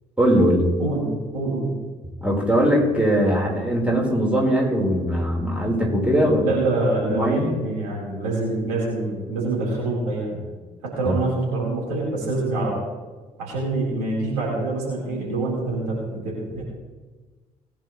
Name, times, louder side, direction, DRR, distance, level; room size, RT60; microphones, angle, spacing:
voice 1, 0.2-0.7 2.2-6.5 7.0-7.5 11.0-11.2, equal, 5° right, -2 dB, 4.4 m, -20 dB
voice 2, 0.8-1.7 6.4-10.4 10.8-12.8 13.4-16.6, right 2 dB, 75° right, -5 dB, 4.3 m, -26 dB
19.5 x 10.0 x 3.2 m, 1.3 s
figure-of-eight pair, 45°, 20 cm